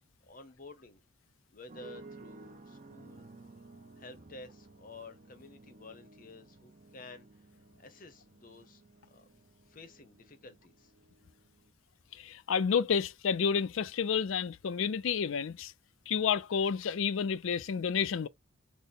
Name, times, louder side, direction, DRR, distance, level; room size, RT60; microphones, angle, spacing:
voice 1, 0.3-1.0 1.5-3.3 4.0-7.3 7.8-8.8 9.1-9.3 9.7-10.9, left 3 dB, 40° left, 0.7 m, -51 dB
sound 1, 1.7-11.7, right 3 dB, 35° right, 0.5 m, -55 dB
voice 2, 12.2-15.7 16.1-18.3, left 6 dB, 70° left, 0.4 m, -30 dB
4.0 x 2.1 x 3.6 m
head